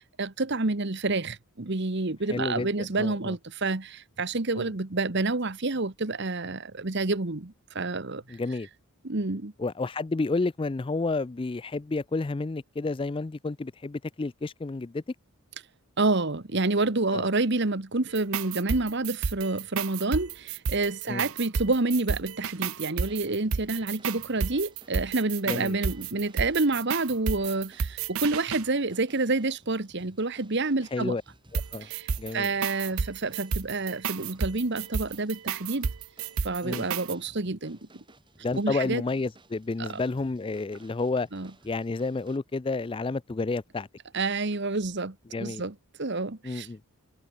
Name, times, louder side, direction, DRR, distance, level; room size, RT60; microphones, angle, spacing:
voice 1, 0.0-8.2 9.0-9.5 16.0-31.2 31.8-35.9 36.4-38.0 38.6-39.0 39.8-39.9 41.3-41.5 44.1-46.7, right 3 dB, 50° right, 1.3 m, -28 dB
voice 2, 2.3-2.7 2.9-3.3 4.5-4.7 8.3-8.7 9.6-15.0 17.1-17.3 21.1-21.3 25.5-25.8 30.9-31.2 31.5-31.9 32.2-32.5 36.6-36.9 38.4-41.3 41.6-43.9 45.3-45.6 46.4-46.8, left 3 dB, 25° left, 0.4 m, -30 dB
sound 1, 18.1-28.6 31.5-37.1, right 5 dB, 70° right, 0.7 m, -32 dB
sound 2, 23.0-42.4, right 2 dB, 20° right, 5.0 m, -58 dB
head